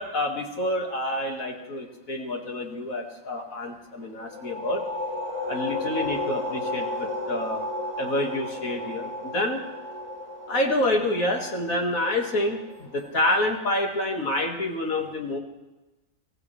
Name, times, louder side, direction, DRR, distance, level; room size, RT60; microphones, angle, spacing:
voice 1, 0.0-4.9 5.5-7.6 8.0-9.6 10.5-15.4, left 1 dB, 85° left, 2 dB, 2.4 m, -28 dB
sound 1, 4.2-13.6, left 2 dB, 20° right, 1.3 m, -33 dB
24.0 x 16.0 x 3.3 m, 1.1 s
omnidirectional pair, 1.4 m